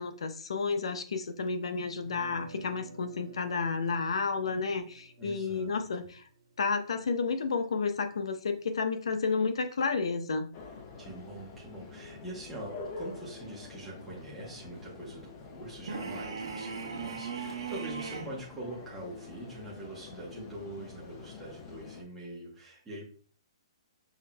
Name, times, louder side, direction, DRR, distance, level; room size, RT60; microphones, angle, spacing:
voice 1, 0.0-6.2 6.6-10.5, left 4 dB, 75° left, 8 dB, 0.6 m, -31 dB
sound 1, 2.0-8.0, right 4 dB, 90° right, 1.3 m, -53 dB
voice 2, 5.2-5.8 11.0-23.1, right 1 dB, 5° right, -6 dB, 0.9 m, -44 dB
sound 2, 10.5-22.0, left 4 dB, 20° left, 0.4 m, -47 dB
sound 3, 15.9-18.4, right 5 dB, 60° right, 1.1 m, -37 dB
5.8 x 2.7 x 2.3 m, 0.43 s
hypercardioid pair, 180°, 3 cm